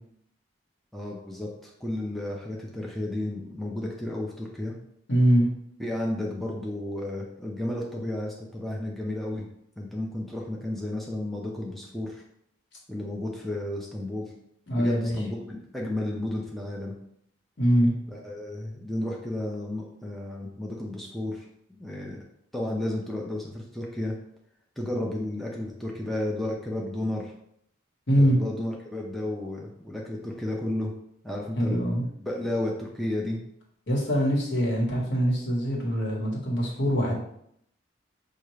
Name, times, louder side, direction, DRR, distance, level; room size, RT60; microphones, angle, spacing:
voice 1, 0.9-4.8 5.8-9.5 9.8-12.2 12.9-14.3 14.8-16.9 18.1-22.2 22.5-24.1 24.8-27.3 28.1-30.9 31.2-31.8 32.2-33.4, left 1 dB, ahead, -3 dB, 0.5 m, -32 dB
voice 2, 5.1-5.5 14.7-15.1 17.6-17.9 28.1-28.4 31.6-32.0 33.9-37.1, equal, 65° left, -2 dB, 1.2 m, -23 dB
5.6 x 2.4 x 3.1 m, 0.72 s
head